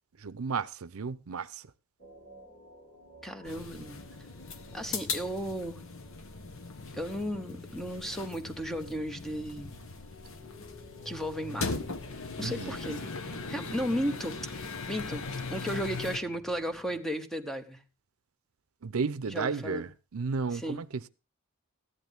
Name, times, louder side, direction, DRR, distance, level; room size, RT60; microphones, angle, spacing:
voice 1, 0.2-1.7 12.4-12.8 18.8-21.1, right 5 dB, 75° right, 0.6 m, -33 dB
sound 1, 2.0-17.0, left 2 dB, 40° left, 3.2 m, -53 dB
voice 2, 3.2-4.0 4.7-5.8 6.9-9.7 11.0-11.7 12.4-13.0 13.5-17.8 19.3-19.9 20.6-20.8, equal, ahead, 1.0 m, -35 dB
sound 2, 3.4-16.2, left 4 dB, 65° left, 1.2 m, -39 dB
14.5 x 10.5 x 3.5 m
head